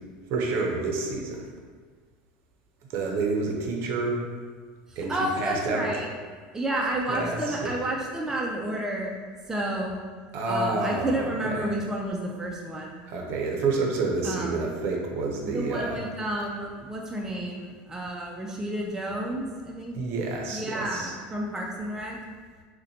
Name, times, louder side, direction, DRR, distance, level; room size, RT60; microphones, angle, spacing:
voice 1, 0.3-1.5 2.9-4.2 5.0-5.9 7.1-7.7 10.3-11.7 13.1-16.0 19.9-21.1, right 3 dB, 55° right, 0 dB, 0.6 m, -29 dB
voice 2, 4.9-6.1 6.5-9.1 9.5-10.0 10.5-13.0 14.2-14.6 15.5-20.0 20.5-22.2, right 1 dB, 10° right, -2 dB, 0.4 m, -31 dB
3.8 x 2.2 x 2.7 m, 1.5 s
supercardioid pair, 115°, 5 cm